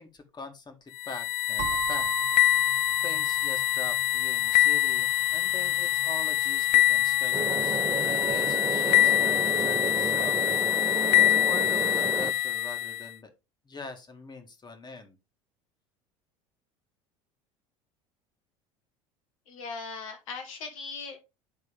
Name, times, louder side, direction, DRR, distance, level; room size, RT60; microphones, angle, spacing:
voice 1, 0.0-10.4 10.8-13.3 13.7-15.2, left 3 dB, 25° left, 6 dB, 1.8 m, -43 dB
sound 1, 1.0-13.1, left 14 dB, 45° left, 0.4 m, -25 dB
sound 2, 1.6-9.4, right 9 dB, 60° right, 0.9 m, -40 dB
sound 3, 7.3-12.3, right 5 dB, 15° right, 0.4 m, -32 dB
voice 2, 19.5-21.2, left 4 dB, 75° left, 6 dB, 1.3 m, -39 dB
11.0 x 3.7 x 3.5 m, 0.26 s
hypercardioid pair, 70°, 17 cm